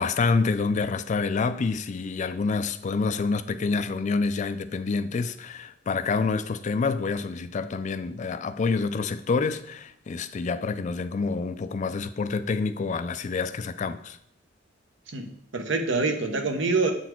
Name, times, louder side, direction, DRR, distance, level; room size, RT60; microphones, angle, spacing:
voice 1, 0.0-14.2, left 4 dB, 40° left, 0.3 m, -27 dB
voice 2, 15.1-16.9, right 3 dB, 65° right, 0.9 m, -26 dB
8.0 x 4.1 x 4.4 m
head